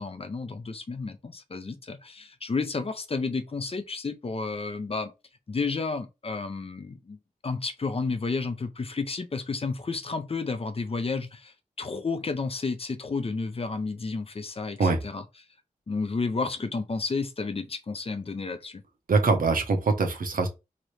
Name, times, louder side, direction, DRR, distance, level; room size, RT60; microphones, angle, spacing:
voice 1, 0.0-5.1 5.5-7.2 7.4-15.2 15.9-18.8, left 4 dB, 40° left, 0.5 m, -31 dB
voice 2, 19.1-20.5, right 3 dB, 70° right, 0.8 m, -23 dB
3.0 x 2.6 x 3.1 m
wide cardioid pair, 80°, 15 cm